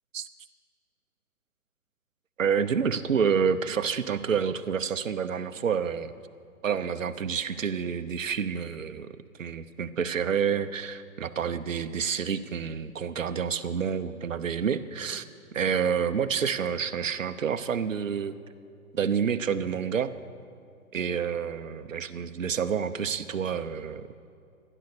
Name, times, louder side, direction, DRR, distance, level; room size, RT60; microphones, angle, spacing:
voice 1, 2.4-6.1 6.6-9.1 9.4-15.2 15.5-18.4 18.9-20.1 20.9-24.1, right 7 dB, 65° right, 10 dB, 0.9 m, -28 dB
15.5 x 11.0 x 6.7 m, 2.5 s
figure-of-eight pair, 130°, 42 cm